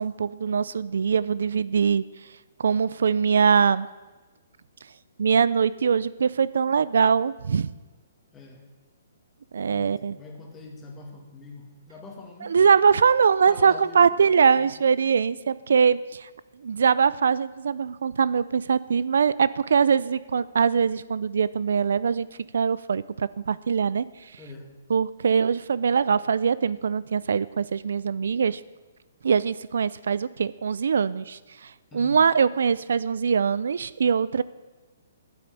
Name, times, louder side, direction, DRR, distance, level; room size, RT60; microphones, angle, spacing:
voice 1, 0.0-2.0 2.6-3.9 5.2-7.7 9.5-10.2 12.5-16.3 16.6-22.3 22.5-24.0 24.9-28.6 29.2-34.4, right 6 dB, 75° right, 18 dB, 0.4 m, -22 dB
voice 2, 8.3-8.6 9.6-12.6 13.5-14.8 24.4-24.7 31.9-32.2, left 2 dB, 10° left, 1 dB, 2.0 m, -44 dB
9.3 x 8.6 x 8.9 m, 1.2 s
hypercardioid pair, 160°, 0 cm